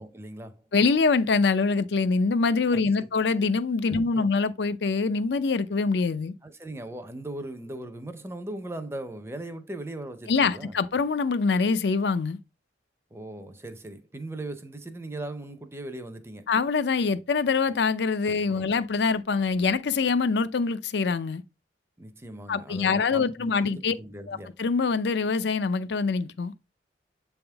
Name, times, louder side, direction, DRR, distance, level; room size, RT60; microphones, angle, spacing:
voice 1, 0.0-0.7 2.7-3.1 3.9-4.3 6.4-10.8 13.1-16.5 18.5-18.7 22.0-24.6, right 1 dB, 15° right, 0.6 m, -39 dB
voice 2, 0.7-6.3 10.3-12.4 16.5-21.4 22.5-24.0 24.3-26.5, left 4 dB, 65° left, 0.5 m, -24 dB
7.8 x 3.6 x 3.4 m
head